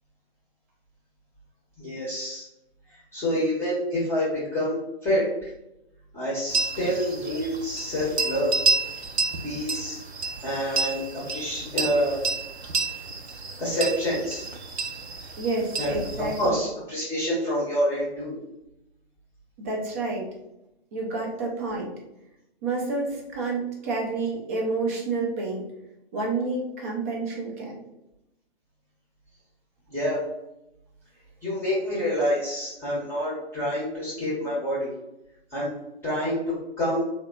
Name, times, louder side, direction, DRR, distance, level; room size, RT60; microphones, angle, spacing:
voice 1, 1.8-2.5 2.9-5.5 6.1-8.5 9.4-10.0 10.4-12.2 13.6-14.4 15.8-16.0 16.4-18.4 29.9-30.2 31.4-34.9 35.5-35.7 36.0-37.0, equal, 5° left, -7 dB, 0.8 m, -27 dB
sound 1, 6.5-16.5, right 4 dB, 85° right, 0.7 m, -30 dB
voice 2, 15.4-16.6 19.6-20.3 20.9-21.9 22.6-25.7 26.1-27.8, right 3 dB, 15° right, -1 dB, 0.4 m, -29 dB
3.4 x 2.3 x 3.6 m, 0.89 s
figure-of-eight pair, 130°, 31 cm